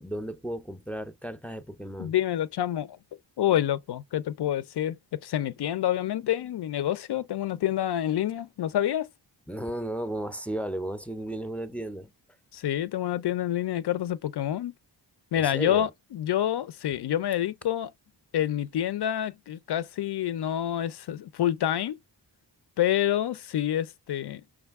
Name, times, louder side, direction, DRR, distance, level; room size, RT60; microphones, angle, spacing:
voice 1, 0.0-2.1 9.5-12.1 15.3-15.9, right 1 dB, 5° left, 0.5 m, -34 dB
voice 2, 2.0-3.0 3.4-9.1 12.5-14.7 15.3-17.9 18.3-22.0 22.8-24.5, left 11 dB, 65° left, 0.5 m, -28 dB
5.0 x 2.3 x 3.5 m
cardioid pair, 75°, 44 cm